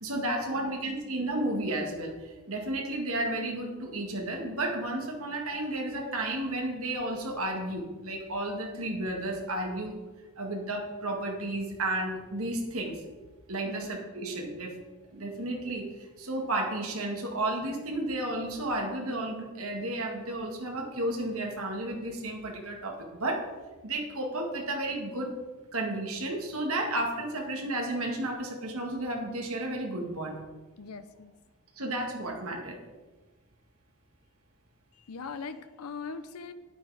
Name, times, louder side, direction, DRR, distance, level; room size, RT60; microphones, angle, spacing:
voice 1, 0.0-10.0 10.4-13.0 13.5-14.8 15.1-23.4 23.8-25.4 25.7-30.4 31.8-32.8, right 1 dB, 70° right, 2 dB, 2.0 m, -32 dB
voice 2, 30.8-31.3 34.9-36.5, left 5 dB, 85° left, 11 dB, 0.6 m, -41 dB
9.6 x 9.1 x 4.9 m, 1.2 s
head